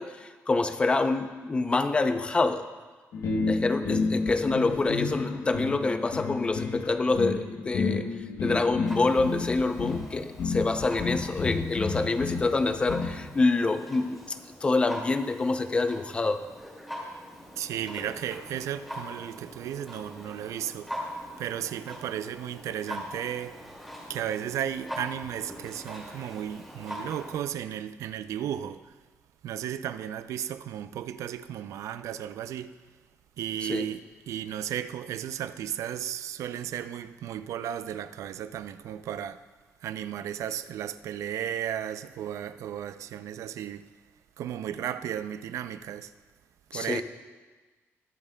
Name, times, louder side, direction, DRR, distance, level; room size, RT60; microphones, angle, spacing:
voice 1, 0.0-2.7 3.5-8.1 8.4-14.4 14.6-16.4 33.6-33.8 46.7-47.0, left 3 dB, 20° left, 0.5 m, -26 dB
sound 1, 3.1-13.3, left 4 dB, 70° left, 1.0 m, -31 dB
Clock, 8.8-27.4, equal, ahead, 2.2 m, -43 dB
voice 2, 17.6-21.0 21.4-23.6 24.1-29.0 29.4-32.8 33.4-39.4 39.8-43.9 44.4-46.1 46.7-47.0, right 10 dB, 85° right, 0.4 m, -34 dB
21.0 x 7.3 x 2.2 m
wide cardioid pair, 170°, 5 cm